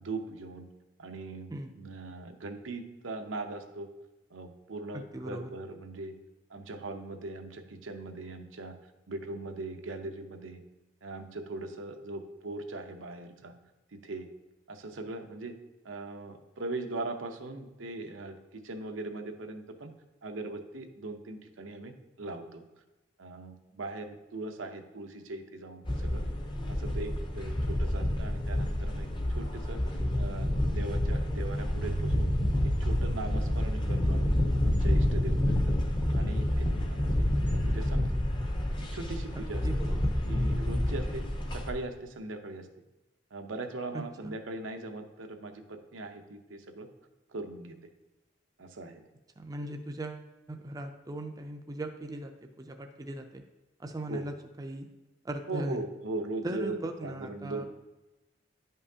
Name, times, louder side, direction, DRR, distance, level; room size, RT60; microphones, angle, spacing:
voice 1, 0.0-0.7 1.0-3.9 4.3-6.1 6.5-8.7 9.1-10.6 11.0-13.5 13.9-14.3 14.7-15.5 15.8-19.9 20.2-22.6 23.2-26.2 26.7-29.1 29.3-32.3 32.8-34.3 34.6-35.7 36.1-37.0 37.7-38.0 38.8-39.6 40.3-41.2 41.5-42.7 43.3-46.9 47.3-47.8 48.6-49.0 54.1-54.2 55.5-56.8 57.0-57.7, right 2 dB, 90° right, 5 dB, 0.7 m, -40 dB
voice 2, 4.9-5.5 39.3-40.1 43.9-44.4 49.4-52.3 52.6-53.4 53.8-54.9 55.2-55.8 56.4-57.6, right 1 dB, 20° right, 5 dB, 0.4 m, -39 dB
sound 1, 25.8-41.7, left 1 dB, 25° left, 0.6 m, -29 dB
sound 2, 31.7-41.9, right 1 dB, 65° left, 1.1 m, -40 dB
10.5 x 5.5 x 2.7 m, 1.0 s
head